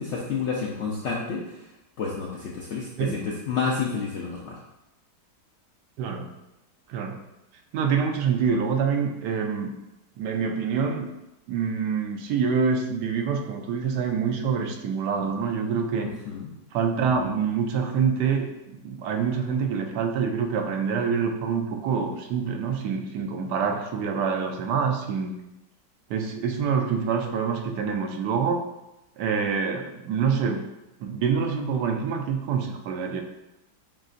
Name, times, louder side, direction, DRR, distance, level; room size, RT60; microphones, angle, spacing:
voice 1, 0.0-1.4 2.0-4.6 16.3-16.5, left 5 dB, 70° left, -3 dB, 0.7 m, -29 dB
voice 2, 7.7-9.7 10.2-11.1 11.5-16.1 16.7-25.3 26.1-28.6 29.2-30.6 31.0-33.2, right 6 dB, 80° right, 3 dB, 1.2 m, -26 dB
7.3 x 2.6 x 2.4 m, 0.92 s
omnidirectional pair, 1.8 m